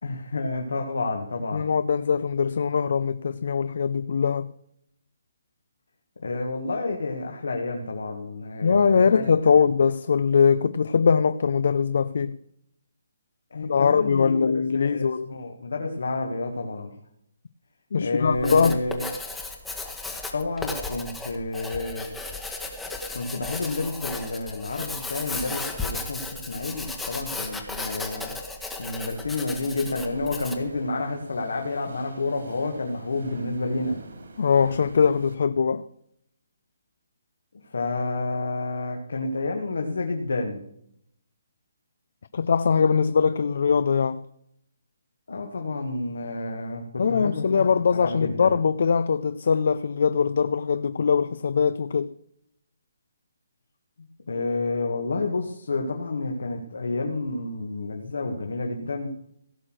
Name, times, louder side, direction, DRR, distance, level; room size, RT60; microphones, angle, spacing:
voice 1, 0.0-1.7 6.2-9.6 13.5-14.4 14.7-16.9 18.0-19.1 20.3-22.1 23.1-28.3 28.8-34.0 37.7-40.6 45.3-48.6 54.3-59.1, left 3 dB, 85° left, 1.9 m, -30 dB
voice 2, 1.5-4.5 8.6-12.4 13.6-15.3 17.9-18.8 34.4-35.8 42.3-44.2 47.0-52.1, left 6 dB, 55° left, 0.5 m, -22 dB
Writing, 18.3-30.7, left 3 dB, 5° left, 1.0 m, -35 dB
sound 1, 29.1-35.4, right 2 dB, 75° right, 3.7 m, -45 dB
16.5 x 6.4 x 6.2 m
hypercardioid pair, 170°, 0 cm